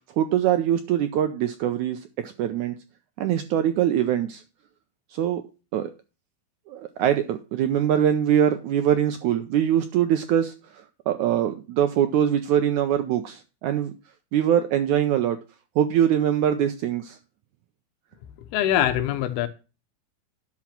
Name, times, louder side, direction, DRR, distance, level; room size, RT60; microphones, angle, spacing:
voice 1, 0.2-2.7 3.2-4.4 5.1-5.4 5.7-5.9 6.7-13.9 14.3-15.4 15.8-17.2, right 10 dB, 85° right, 1.7 m, -23 dB
voice 2, 18.5-19.5, left 11 dB, 85° left, 2.8 m, -23 dB
11.0 x 6.0 x 5.7 m
omnidirectional pair, 4.3 m